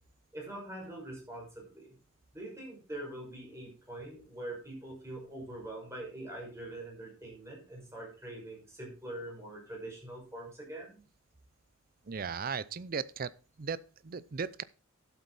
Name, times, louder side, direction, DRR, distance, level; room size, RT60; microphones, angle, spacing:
voice 1, 0.3-2.0 2.3-11.0, right 1 dB, 15° right, 6.1 m, -44 dB
voice 2, 12.1-13.3 13.6-14.6, right 5 dB, 45° right, 0.5 m, -36 dB
12.5 x 8.1 x 4.2 m
head